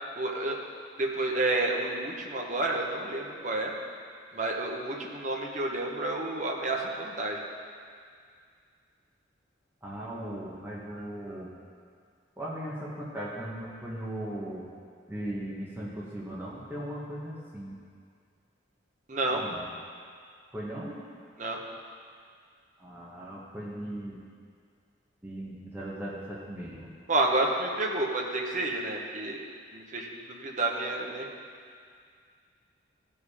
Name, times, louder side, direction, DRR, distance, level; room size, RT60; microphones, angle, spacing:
voice 1, 0.2-0.6 1.0-3.7 4.3-7.4 19.1-19.4 21.4-21.6 27.1-29.4 29.7-31.3, right 2 dB, 40° right, 0 dB, 1.1 m, -30 dB
voice 2, 9.8-11.5 12.4-14.7 15.1-17.8 19.3-19.6 20.5-21.0 22.8-24.2 25.2-26.9, right 1 dB, 10° right, -6 dB, 1.3 m, -38 dB
15.5 x 5.4 x 4.9 m, 2.2 s
head